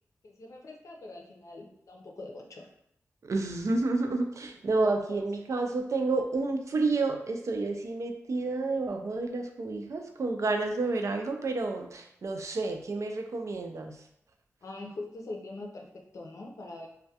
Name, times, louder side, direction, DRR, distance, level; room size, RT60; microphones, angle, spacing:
voice 1, 0.2-2.7 4.8-5.2 14.6-16.9, left 2 dB, 65° left, 0 dB, 0.5 m, -43 dB
voice 2, 3.2-14.0, right 3 dB, 60° right, 4 dB, 0.4 m, -30 dB
2.2 x 2.2 x 2.7 m, 0.74 s
cardioid pair, 50°, 6 cm